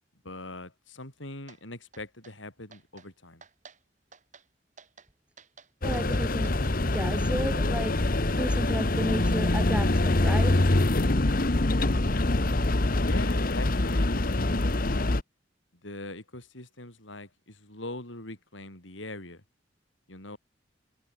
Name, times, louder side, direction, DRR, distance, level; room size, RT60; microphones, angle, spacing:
voice 1, 0.2-3.4 13.0-15.2 15.8-19.4 20.1-20.4, left 2 dB, 80° left, 6.6 m, -41 dB
ducttapenoise two accelrando, 1.5-1.6 1.9-2.4 2.7-3.1 3.4-3.8 4.1-4.5 4.8-5.1 5.4-7.2, right 5 dB, 40° right, 7.0 m, -52 dB
sound 1, 5.8-15.2, left 2 dB, 50° left, 1.2 m, -25 dB
voice 2, 5.8-6.5 6.8-7.9 8.4-10.6, equal, 5° right, 2.5 m, -33 dB
head